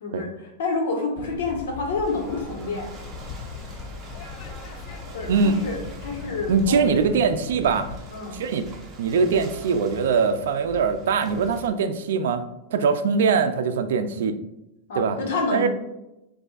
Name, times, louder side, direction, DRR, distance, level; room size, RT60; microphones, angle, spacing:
voice 1, 0.6-2.9 5.1-6.8 8.1-8.4 14.9-15.7, left 3 dB, 90° left, 0 dB, 1.3 m, -28 dB
sound 1, 1.2-8.0, left 6 dB, 45° left, 0.3 m, -39 dB
Ocean / Boat Water vehicle, 2.0-11.7, right 2 dB, 20° right, 0.8 m, -43 dB
voice 2, 6.5-7.9 8.3-8.6 9.0-12.4 12.7-14.4 14.9-15.2 15.5-15.7, right 5 dB, 85° right, 9 dB, 0.4 m, -22 dB
6.5 x 2.6 x 2.4 m, 0.91 s
supercardioid pair, 165°, 0 cm